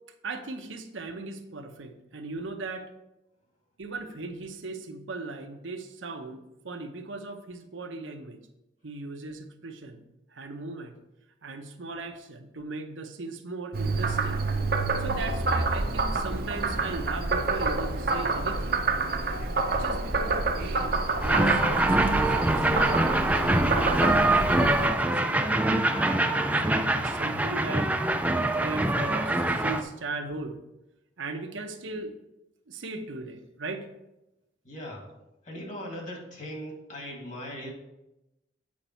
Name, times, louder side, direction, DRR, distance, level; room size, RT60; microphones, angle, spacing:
voice 1, 0.2-2.9 3.8-8.4 8.8-10.0 10.3-11.0 11.4-14.4 15.0-18.9 19.7-27.9 28.6-30.6 31.2-32.1 32.7-33.9, right 3 dB, 80° right, 6 dB, 0.9 m, -38 dB
Frog, 13.7-24.9, right 3 dB, 50° right, 0.7 m, -28 dB
sound 1, 21.2-29.8, right 1 dB, 10° right, 0.4 m, -24 dB
voice 2, 34.6-35.1 35.4-37.7, equal, 40° left, 0 dB, 1.9 m, -39 dB
8.6 x 5.2 x 4.4 m, 0.92 s
head